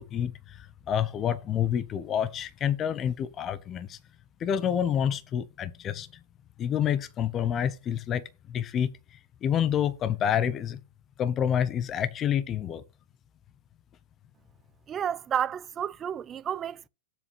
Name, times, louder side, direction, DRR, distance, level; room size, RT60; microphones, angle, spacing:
voice 1, 0.0-4.0 4.4-6.1 6.6-8.2 8.5-8.9 9.4-10.8 11.2-12.8, left 9 dB, 30° left, 0.9 m, -28 dB
voice 2, 14.9-16.9, right 9 dB, 25° right, 0.4 m, -31 dB
7.5 x 4.7 x 5.8 m
hypercardioid pair, 125°, 0 cm